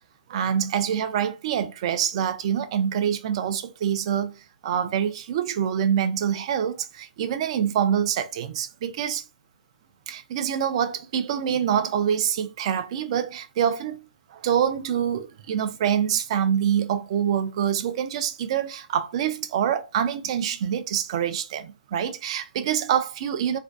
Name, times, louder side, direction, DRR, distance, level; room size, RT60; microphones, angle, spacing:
voice 1, 0.3-9.2 10.1-14.0 14.3-23.6, right 9 dB, 40° right, 0.3 m, -25 dB
2.5 x 2.2 x 2.3 m
hypercardioid pair, 155°, 5 cm